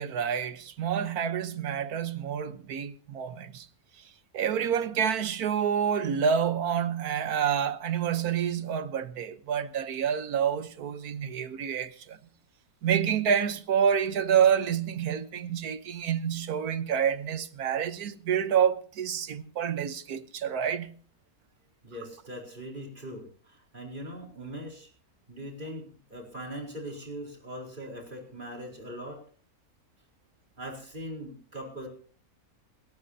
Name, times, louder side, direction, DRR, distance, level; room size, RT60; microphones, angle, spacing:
voice 1, 0.0-3.7 4.0-4.1 4.3-12.2 12.8-20.9, right 8 dB, 85° right, 1.5 m, -28 dB
voice 2, 21.8-24.9 25.3-29.2 30.6-31.9, equal, 35° right, 4.5 m, -41 dB
28.5 x 13.0 x 2.8 m
omnidirectional pair, 1.5 m